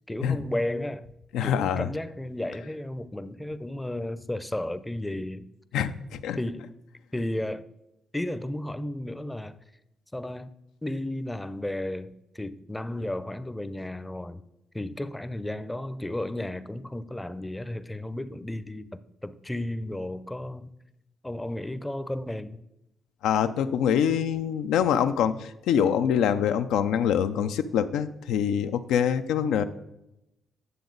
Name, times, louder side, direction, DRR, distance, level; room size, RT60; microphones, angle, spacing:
voice 1, 0.1-1.1 1.4-5.5 6.4-6.7 7.1-7.7 8.1-9.6 10.1-10.5 10.8-14.4 14.7-20.7 21.2-22.6, left 1 dB, 10° left, 0.5 m, -33 dB
voice 2, 1.3-1.9 5.7-6.4 23.2-29.6, left 8 dB, 90° left, 0.5 m, -25 dB
9.5 x 7.1 x 3.9 m
cardioid pair, 80°, 0 cm